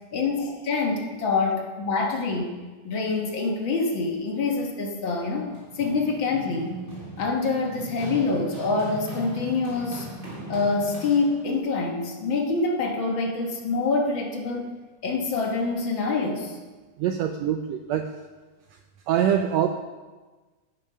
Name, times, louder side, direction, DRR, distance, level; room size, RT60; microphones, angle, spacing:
voice 1, 0.1-2.5 2.8-6.8 7.2-10.1 10.5-14.7 15.0-16.6, left 3 dB, 55° left, 1 dB, 1.5 m, -26 dB
Run, 5.2-11.6, right 1 dB, 40° right, 4.0 m, -39 dB
voice 2, 17.0-18.1 19.1-19.7, right 9 dB, 80° right, 6 dB, 1.5 m, -24 dB
10.5 x 9.9 x 5.5 m, 1.3 s
omnidirectional pair, 3.6 m